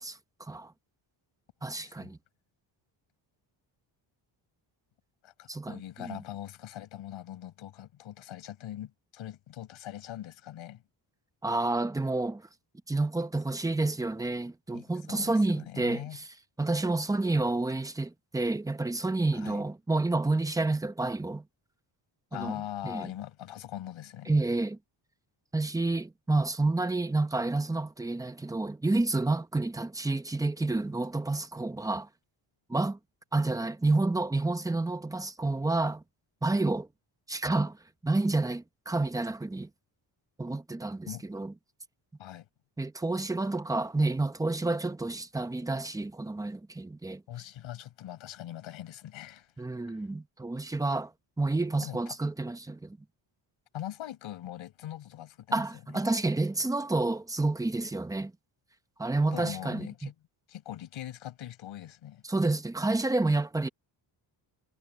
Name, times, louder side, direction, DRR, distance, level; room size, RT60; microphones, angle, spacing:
voice 1, 0.0-0.7 1.6-2.2 5.5-6.2 11.4-12.4 12.9-16.2 16.6-21.4 22.3-22.6 22.8-23.1 24.3-24.8 25.5-32.1 32.7-33.0 33.3-36.0 36.4-36.9 37.3-37.8 38.0-39.7 40.4-41.5 42.8-47.2 49.6-51.1 51.4-53.0 55.5-58.3 59.0-60.1 62.3-63.7, right 2 dB, 10° right, 0.7 m, -29 dB
voice 2, 1.8-2.1 5.2-10.8 14.7-16.2 19.3-19.6 22.3-24.4 41.1-41.2 42.2-42.5 47.3-49.5 49.9-50.0 51.8-52.2 53.7-55.6 59.3-60.1 60.5-62.2, left 12 dB, 85° left, 5.4 m, -42 dB
cardioid pair, 160°, 46 cm